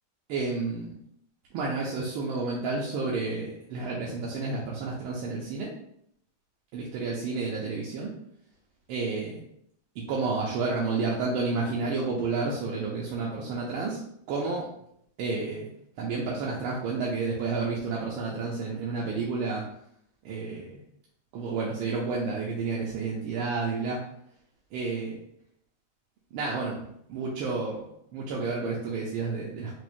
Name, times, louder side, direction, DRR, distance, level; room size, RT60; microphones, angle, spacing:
voice 1, 0.3-0.9 1.5-5.7 6.7-8.2 8.9-9.4 10.0-14.0 14.3-14.7 15.2-15.7 16.0-19.7 20.2-20.8 21.3-24.0 24.7-25.2 26.3-26.8 27.1-27.9 28.1-29.8, right 4 dB, 80° right, -4 dB, 1.4 m, -30 dB
5.9 x 2.1 x 2.5 m, 0.71 s
omnidirectional pair, 2.2 m